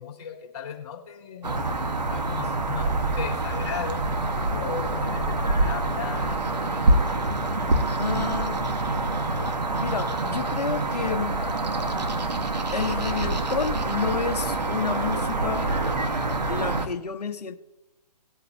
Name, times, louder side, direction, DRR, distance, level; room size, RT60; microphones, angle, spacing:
voice 1, 0.0-1.7 2.1-2.9 3.2-4.0 4.5-6.4, left 7 dB, 40° left, -2 dB, 3.6 m, -36 dB
sound 1, 1.4-16.9, right 2 dB, 80° right, 1.4 m, -26 dB
voice 2, 7.9-8.6 9.8-11.4 12.7-15.8 16.5-17.6, left 6 dB, 70° left, 8 dB, 1.3 m, -30 dB
20.5 x 8.2 x 2.8 m, 0.93 s
figure-of-eight pair, 135°, 21 cm